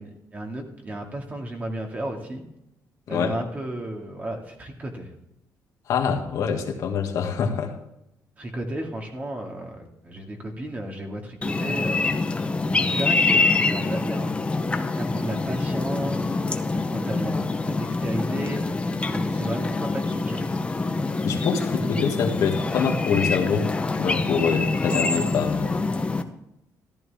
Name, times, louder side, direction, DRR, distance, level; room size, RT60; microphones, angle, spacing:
voice 1, 0.0-2.4 3.1-5.1 8.4-12.1 12.7-14.4 14.8-16.4 16.7-17.4 17.7-20.5, right 1 dB, 25° right, 2 dB, 2.1 m, -33 dB
voice 2, 5.9-7.7 21.3-25.8, left 6 dB, 70° left, 2 dB, 1.9 m, -25 dB
sound 1, 11.4-26.2, left 3 dB, 20° left, 0.8 m, -25 dB
14.0 x 12.0 x 3.5 m, 0.85 s
cardioid pair, 140°, 6 cm